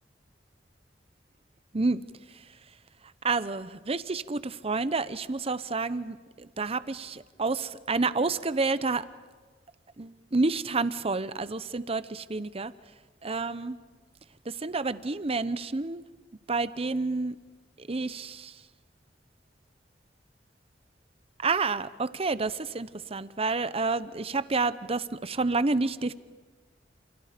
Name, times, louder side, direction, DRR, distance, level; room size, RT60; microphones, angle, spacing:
voice 1, 3.2-9.1 10.0-12.7 13.2-13.8 14.5-16.0 16.5-17.4 17.8-18.6 21.4-26.1, right 3 dB, 35° right, 15 dB, 0.8 m, -29 dB
28.5 x 28.5 x 5.1 m, 1.4 s
head